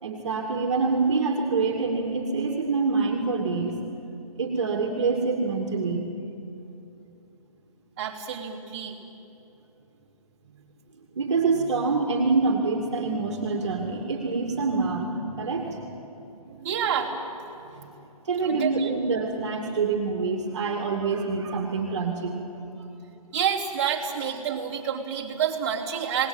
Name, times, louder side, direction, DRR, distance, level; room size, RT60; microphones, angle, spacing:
voice 1, 0.0-3.8 4.4-6.1 11.1-16.0 17.7-17.9 18.2-22.4, right 4 dB, 50° right, 1 dB, 2.6 m, -26 dB
voice 2, 8.0-9.0 16.4-17.4 18.4-18.9 23.3-26.3, right 8 dB, 25° right, -5 dB, 3.3 m, -28 dB
28.0 x 19.5 x 9.0 m, 2.9 s
hypercardioid pair, 165°, 19 cm